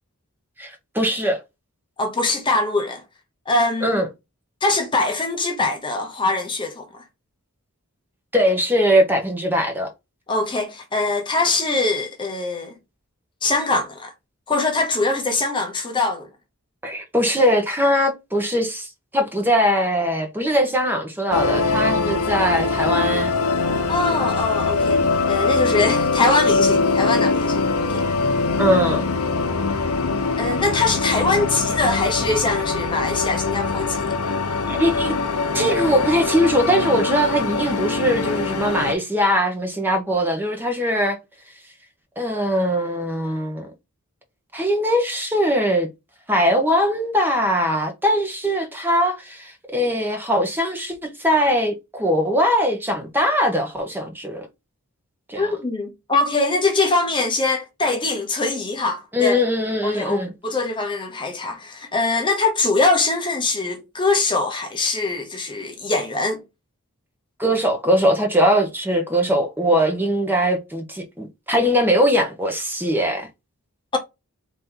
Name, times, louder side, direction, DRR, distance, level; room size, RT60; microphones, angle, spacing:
voice 1, 0.6-1.4 3.8-4.1 8.3-9.9 16.8-23.3 28.6-29.0 34.7-35.1 35.5-41.2 42.2-43.7 44.5-45.9 46.3-54.5 55.3-55.6 59.1-60.3 67.4-73.3, equal, 10° right, 1.0 m, -21 dB
voice 2, 2.0-3.0 3.5-4.0 4.6-6.9 10.3-12.7 13.4-14.1 14.5-16.3 23.9-28.0 28.8-29.0 30.4-34.1 55.4-59.4 59.8-66.4, left 3 dB, 20° left, 0.9 m, -22 dB
sound 1, 21.3-38.9, left 4 dB, 75° left, 0.9 m, -22 dB
4.1 x 3.0 x 3.8 m
head